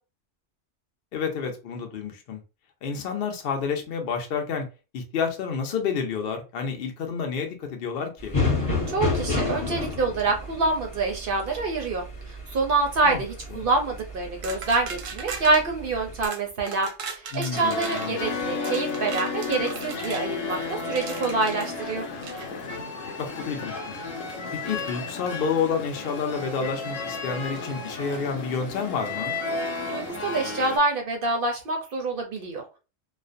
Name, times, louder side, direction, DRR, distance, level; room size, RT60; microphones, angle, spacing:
voice 1, 1.1-2.4 2.8-4.7 4.9-8.4 13.0-13.2 13.6-13.7 17.3-18.5 23.2-24.0 24.6-29.4, left 6 dB, 60° left, 3 dB, 0.7 m, -29 dB
sound 1, 8.2-16.3, left 3 dB, 30° left, 0.9 m, -31 dB
voice 2, 8.9-22.0 29.9-32.8, right 3 dB, 60° right, 3 dB, 0.6 m, -26 dB
sound 2, 14.4-15.6 16.2-16.4 16.7-18.1 18.6-20.3 21.0-21.7 22.2-22.5, right 5 dB, 90° right, 1.0 m, -37 dB
sound 3, 17.5-30.8, left 4 dB, 80° left, 1.0 m, -33 dB
2.4 x 2.1 x 2.5 m, 0.31 s
omnidirectional pair, 1.3 m